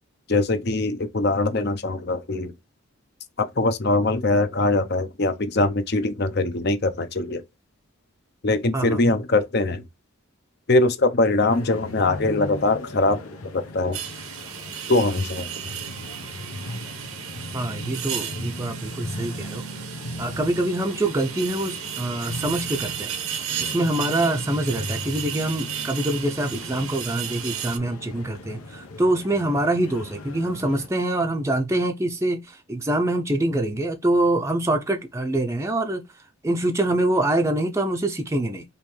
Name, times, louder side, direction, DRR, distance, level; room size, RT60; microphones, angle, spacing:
voice 1, 0.3-2.5 3.4-7.4 8.4-9.8 10.7-13.2 13.5-14.0 14.9-15.5, left 2 dB, 50° left, 0.7 m, -22 dB
sound 1, 11.5-30.9, left 1 dB, 90° left, 1.1 m, -38 dB
sound 2, 13.9-27.8, right 9 dB, 80° right, 0.8 m, -34 dB
voice 2, 17.5-19.6 20.2-23.1 23.6-36.0 36.4-38.6, right 1 dB, 15° right, 0.5 m, -25 dB
5.4 x 3.0 x 3.2 m
head